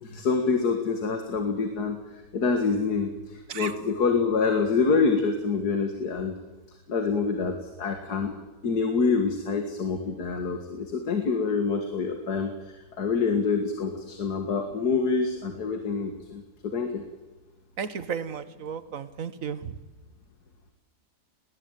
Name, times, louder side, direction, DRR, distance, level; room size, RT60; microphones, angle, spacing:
voice 1, 0.0-2.0 2.3-6.4 6.9-8.3 8.6-17.0, left 4 dB, 65° left, 6 dB, 2.3 m, -26 dB
voice 2, 17.8-19.7, right 7 dB, 55° right, 14 dB, 1.4 m, -34 dB
20.5 x 17.5 x 9.2 m, 1.1 s
omnidirectional pair, 1.9 m